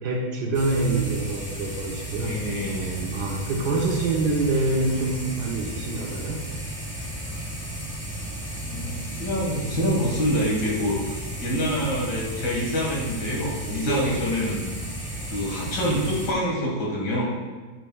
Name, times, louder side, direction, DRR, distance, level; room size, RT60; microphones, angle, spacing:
voice 1, 0.0-2.4 3.1-6.4 13.7-14.1, right 3 dB, 70° right, -1 dB, 1.4 m, -26 dB
sound 1, 0.5-16.3, right 1 dB, 10° left, 1.1 m, -34 dB
voice 2, 2.2-3.4 8.6-11.0 11.4-14.7 15.3-17.2, equal, 75° left, -3 dB, 2.4 m, -26 dB
9.1 x 6.7 x 2.3 m, 1.4 s
omnidirectional pair, 1.9 m